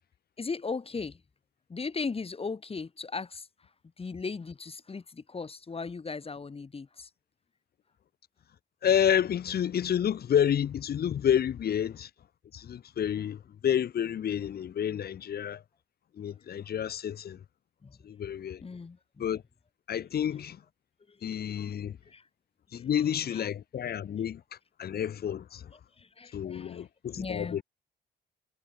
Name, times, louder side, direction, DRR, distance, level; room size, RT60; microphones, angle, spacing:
voice 1, 0.4-1.2 1.7-3.5 4.0-7.1 17.8-18.0 18.6-19.3 20.3-20.4 21.1-21.8 22.1-22.3 22.7-23.5 26.0-26.9 27.1-27.6, left 4 dB, 30° left, 2.1 m, -38 dB
voice 2, 8.8-12.1 12.5-15.6 16.2-17.4 18.0-18.6 19.2-19.4 19.9-20.6 21.2-22.0 22.7-24.4 24.8-25.7 26.3-27.6, left 9 dB, 50° left, 0.9 m, -29 dB
cardioid pair, 90°, 20 cm